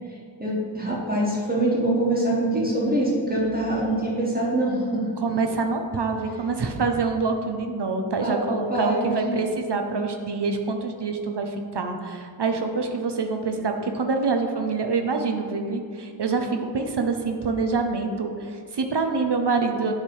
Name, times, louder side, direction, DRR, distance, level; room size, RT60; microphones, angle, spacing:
voice 1, 0.4-5.1 8.2-8.4 8.7-9.1, right 1 dB, 20° right, -6 dB, 1.5 m, -24 dB
voice 2, 5.2-19.9, right 4 dB, 60° right, 5 dB, 0.8 m, -26 dB
9.6 x 3.4 x 4.7 m, 2.1 s
wide cardioid pair, 65°, 45 cm